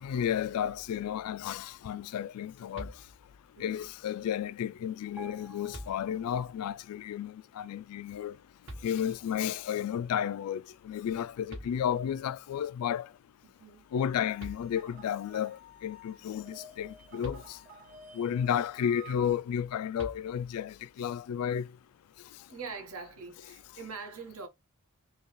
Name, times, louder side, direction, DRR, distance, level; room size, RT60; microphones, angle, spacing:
voice 1, 0.0-2.9 3.6-8.4 8.8-13.1 13.9-17.6 18.1-21.7, left 9 dB, 85° left, 0.3 m, -32 dB
sound 1, 2.7-3.5 5.0-5.1 5.7-6.5 8.7-9.4 11.2-11.3 11.5-12.3 14.0-14.1 14.4-15.1 17.2-18.0 20.0-20.7, equal, 60° right, 1.5 m, -47 dB
voice 2, 3.6-3.9 13.4-13.8 18.2-18.6 22.5-24.5, right 4 dB, 80° right, 1.4 m, -44 dB
sound 2, 5.2-6.8 7.1-7.3, right 1 dB, 5° right, 0.3 m, -51 dB
sound 3, 13.9-19.3, right 1 dB, 40° right, 1.5 m, -52 dB
4.5 x 2.3 x 3.1 m
head